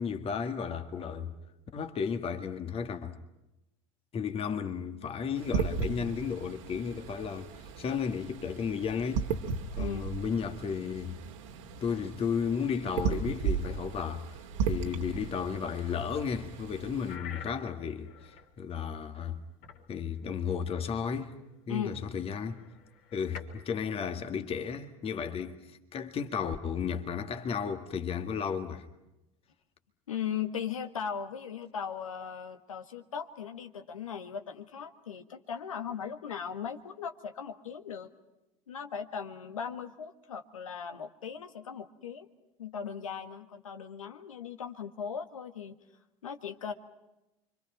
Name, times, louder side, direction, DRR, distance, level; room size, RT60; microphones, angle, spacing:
voice 1, 0.0-1.3 1.7-3.2 4.1-7.5 7.8-9.3 9.7-11.2 11.8-19.4 19.9-21.4 21.7-22.6 23.1-28.9, left 6 dB, 35° left, 2.0 m, -34 dB
sound 1, 5.4-17.2, right 6 dB, 65° right, 2.1 m, -36 dB
voice 2, 9.8-10.1 21.7-22.0 30.1-38.1 38.7-42.3 42.6-45.7 46.2-46.7, left 7 dB, 75° left, 1.7 m, -38 dB
sound 2, 17.1-18.5 19.6-19.9 21.4-21.5 22.1-23.8, left 7 dB, 55° left, 3.3 m, -48 dB
29.5 x 25.0 x 5.8 m
figure-of-eight pair, 70°, 17 cm